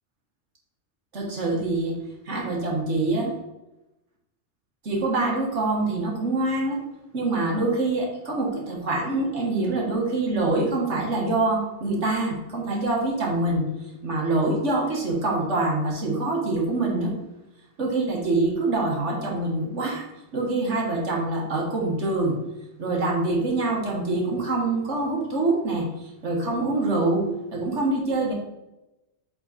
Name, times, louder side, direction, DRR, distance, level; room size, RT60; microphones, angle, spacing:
voice 1, 1.1-1.9 2.3-3.3 4.8-6.8 7.1-13.7 14.0-17.1 17.8-20.1 20.3-22.4 22.8-25.9 26.2-28.3, right 2 dB, 85° right, -2 dB, 2.0 m, -25 dB
7.8 x 4.1 x 4.2 m, 0.97 s
omnidirectional pair, 1.2 m